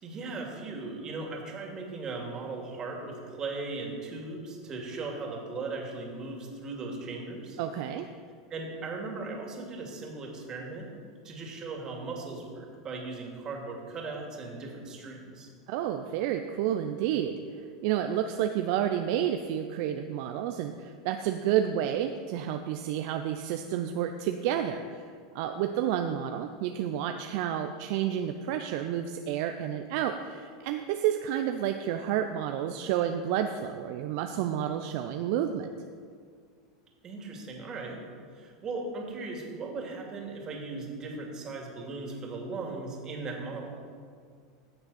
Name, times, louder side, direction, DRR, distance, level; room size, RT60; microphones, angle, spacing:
voice 1, 0.0-7.6 8.5-10.9 11.2-15.5 37.0-38.0 38.3-43.8, right 3 dB, 35° right, 0 dB, 2.5 m, -38 dB
voice 2, 7.6-8.1 15.7-25.1 25.3-35.7, right 10 dB, 60° right, 6 dB, 0.6 m, -30 dB
15.5 x 6.7 x 4.3 m, 2.1 s
hypercardioid pair, 90°, 2 cm